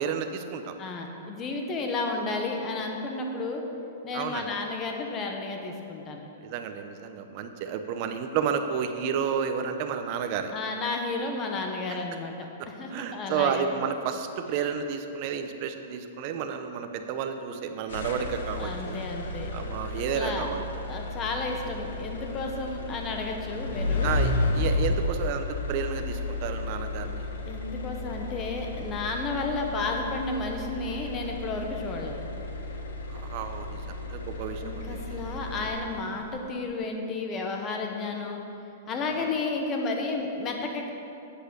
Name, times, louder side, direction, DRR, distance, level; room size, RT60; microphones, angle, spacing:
voice 1, 0.0-0.7 4.1-4.5 6.4-10.5 12.6-19.0 19.5-20.6 24.0-27.3 33.1-35.2, right 7 dB, 35° right, 7 dB, 0.7 m, -31 dB
voice 2, 0.8-3.6 4.0-6.2 10.5-13.6 18.6-19.5 20.1-20.5 20.9-24.1 27.5-32.2 34.6-38.4 38.9-40.9, left 3 dB, 20° left, 2 dB, 1.1 m, -32 dB
sound 1, 17.9-36.2, left 2 dB, 85° left, 1.2 m, -33 dB
8.4 x 7.9 x 6.2 m, 2.8 s
hypercardioid pair, 160°, 0 cm